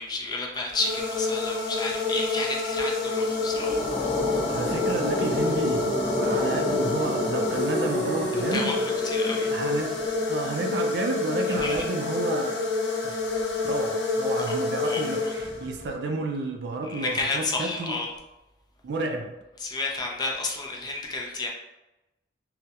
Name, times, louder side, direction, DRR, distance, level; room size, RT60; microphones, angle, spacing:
voice 1, 0.0-3.8 8.5-9.5 11.6-11.8 14.5-14.6 14.8-15.4 16.9-18.1 19.6-21.5, left 3 dB, 25° left, 0 dB, 0.4 m, -31 dB
sound 1, 0.7-15.9, left 3 dB, 85° left, 0.5 m, -28 dB
sound 2, 3.2-10.3, equal, 30° right, 0.9 m, -31 dB
voice 2, 4.5-5.9 6.2-8.8 9.5-10.0 10.3-12.6 13.0-13.2 13.6-18.0 18.8-19.3, right 2 dB, 70° right, 3 dB, 0.4 m, -31 dB
2.2 x 2.1 x 2.7 m, 0.98 s
head